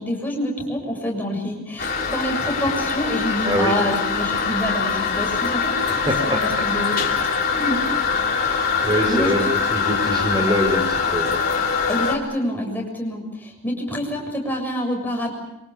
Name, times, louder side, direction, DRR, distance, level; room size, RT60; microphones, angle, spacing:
voice 1, 0.0-7.8 9.1-9.5 11.9-15.4, equal, 10° left, 0 dB, 7.0 m, -27 dB
Toilet flush, 1.8-12.2, left 5 dB, 45° left, 3.4 m, -23 dB
voice 2, 6.1-6.4 8.8-11.3, equal, 20° right, 3 dB, 4.5 m, -23 dB
27.0 x 25.0 x 7.2 m, 0.87 s
head